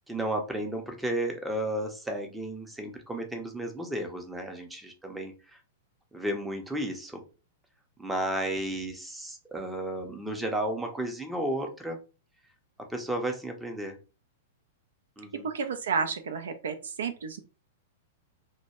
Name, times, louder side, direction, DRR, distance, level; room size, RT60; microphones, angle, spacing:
voice 1, 0.1-5.3 6.1-7.2 8.0-12.0 12.8-14.0 15.2-15.5, right 1 dB, 5° right, 3 dB, 0.5 m, -33 dB
voice 2, 15.3-17.4, right 5 dB, 70° right, 8 dB, 0.3 m, -31 dB
2.1 x 2.1 x 2.9 m, 0.34 s
figure-of-eight pair, 105°, 0 cm